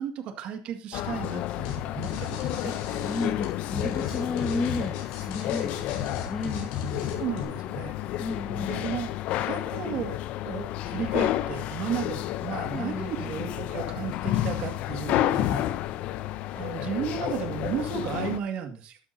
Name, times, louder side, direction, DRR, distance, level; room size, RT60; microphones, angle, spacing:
voice 1, 0.0-2.7 7.2-8.0 8.6-9.1 9.4-10.2 10.4-15.7 16.5-19.0, right 8 dB, 55° right, 5 dB, 2.0 m, -34 dB
sound 1, 0.9-18.4, left 13 dB, 65° left, 0.7 m, -31 dB
sound 2, 1.6-1.8 2.0-7.4, left 6 dB, 85° left, 4.8 m, -35 dB
voice 2, 3.0-6.7 8.2-8.7 12.7-13.1, left 3 dB, 20° left, 0 dB, 2.0 m, -33 dB
12.5 x 12.0 x 2.8 m, 0.36 s
cardioid pair, 135°, 2 cm